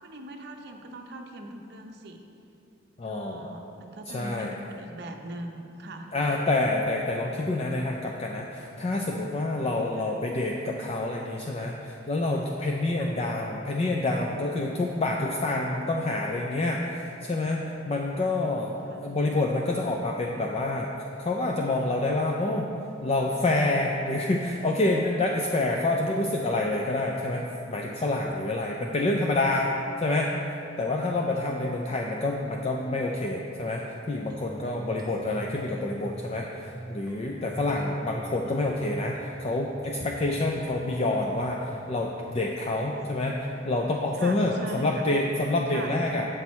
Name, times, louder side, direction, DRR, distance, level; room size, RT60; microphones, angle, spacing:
voice 1, 0.0-2.2 3.1-6.1 10.0-10.2 13.0-13.2 18.2-18.5 18.9-19.0 42.6-43.1 44.2-45.0 45.7-45.9, right 1 dB, 55° right, 3 dB, 0.7 m, -42 dB
voice 2, 3.0-3.5 4.1-4.5 6.1-18.7 19.0-20.9 21.2-22.7 23.0-29.7 30.0-30.3 30.8-43.4 43.6-46.3, left 2 dB, 30° left, 0 dB, 0.4 m, -27 dB
sound 1, 34.3-41.8, right 1 dB, 20° right, 0.6 m, -45 dB
7.9 x 6.0 x 4.2 m, 2.7 s
head